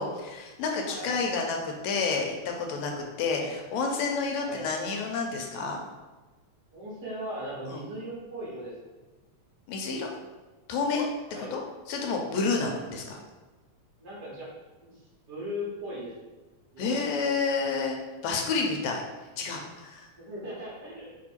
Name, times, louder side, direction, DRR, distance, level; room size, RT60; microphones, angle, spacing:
voice 1, 0.0-5.8 7.7-7.8 9.7-10.1 10.7-11.1 11.5-11.6 11.9-13.2 16.8-18.0 18.2-19.0 19.4-20.1, left 4 dB, 80° left, 1 dB, 1.8 m, -29 dB
voice 2, 0.9-1.2 3.3-3.5 4.4-4.7 6.7-8.7 11.3-11.6 14.0-14.5 14.8-15.0 15.3-16.3 16.7-17.0 20.2-21.1, equal, 55° right, -6 dB, 1.2 m, -38 dB
4.4 x 2.6 x 4.3 m, 1.2 s
omnidirectional pair, 3.3 m